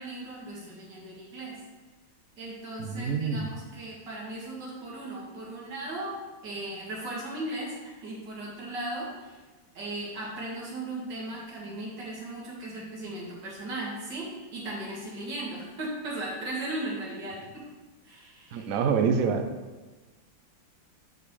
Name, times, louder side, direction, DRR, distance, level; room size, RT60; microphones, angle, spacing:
voice 1, 0.0-1.6 2.4-6.1 6.4-9.4 9.7-17.7 18.0-18.7, right 1 dB, 60° right, -5 dB, 2.5 m, -37 dB
voice 2, 2.8-3.5 18.5-19.4, right 6 dB, 90° right, 5 dB, 0.7 m, -26 dB
9.1 x 5.2 x 3.2 m, 1.3 s
omnidirectional pair, 2.3 m